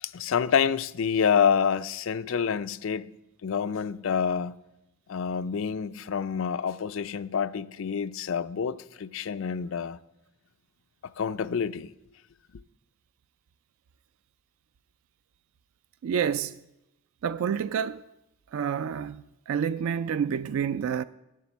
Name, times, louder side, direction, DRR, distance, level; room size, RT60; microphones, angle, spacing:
voice 1, 0.0-3.1 3.4-4.5 5.1-10.0 11.2-11.9, left 7 dB, 70° left, 0.4 m, -27 dB
voice 2, 16.0-16.6 17.2-18.1 18.5-21.0, right 7 dB, 85° right, 0.3 m, -28 dB
10.5 x 7.5 x 7.0 m
head